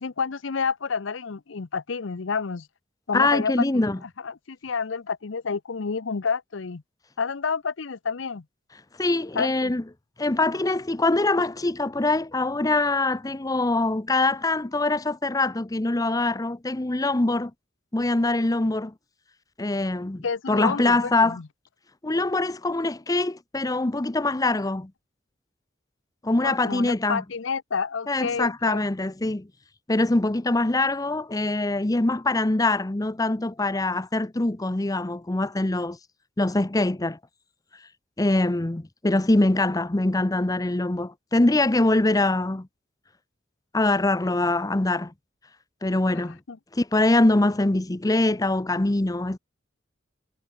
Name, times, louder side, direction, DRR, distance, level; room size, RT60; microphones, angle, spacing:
voice 1, 0.0-2.7 3.1-3.9 4.2-6.8 7.2-8.4 9.3-9.7 20.2-21.4 26.4-28.8 46.1-46.6, left 5 dB, 85° left, 0.7 m, -29 dB
voice 2, 3.1-4.0 9.0-9.8 10.2-17.5 17.9-18.9 19.6-21.4 22.0-24.9 26.2-27.2 28.1-29.5 29.9-36.0 36.4-37.2 38.2-42.7 43.7-45.1 45.8-46.4 46.7-49.4, left 2 dB, 20° left, 0.7 m, -23 dB
head